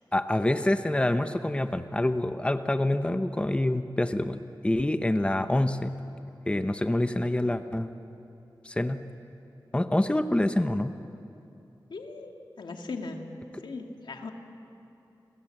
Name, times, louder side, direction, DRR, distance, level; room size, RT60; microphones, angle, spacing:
voice 1, 0.1-6.0 6.5-7.9 8.6-9.0 9.7-10.9, left 1 dB, 15° left, 9 dB, 0.9 m, -26 dB
voice 2, 11.9-13.2 13.6-14.3, left 3 dB, 85° left, 3 dB, 2.2 m, -38 dB
29.5 x 22.5 x 7.8 m, 2.8 s
wide cardioid pair, 80°, 8 cm